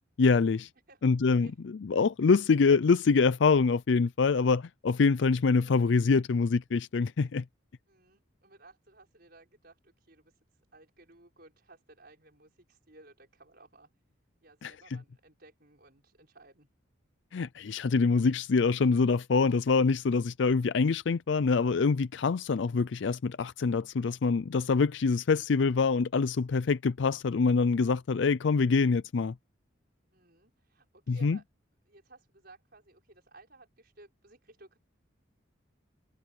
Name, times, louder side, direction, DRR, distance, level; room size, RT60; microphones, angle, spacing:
voice 1, 0.2-0.7 1.0-1.5 1.8-7.4 14.6-14.7 17.3-29.3 31.1-31.4, left 4 dB, 65° left, 0.4 m, -25 dB
voice 2, 0.9-1.6 5.2-5.8 7.9-13.9 14.4-16.7 30.1-31.4 31.9-34.8, right 2 dB, 50° right, 6.1 m, -58 dB
head